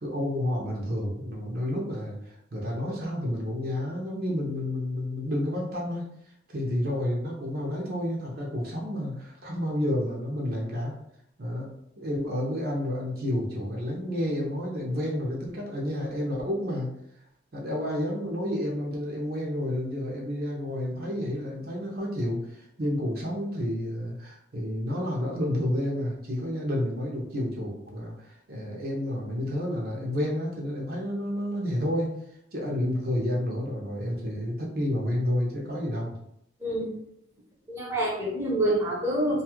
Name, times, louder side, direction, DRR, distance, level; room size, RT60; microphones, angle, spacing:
voice 1, 0.0-6.1 6.5-11.0 11.4-16.9 17.5-32.2 32.5-36.1, left 1 dB, 50° right, -2 dB, 0.7 m, -30 dB
voice 2, 36.6-36.9 37.7-39.4, right 1 dB, 15° right, -6 dB, 0.7 m, -27 dB
2.6 x 2.4 x 3.0 m, 0.76 s
head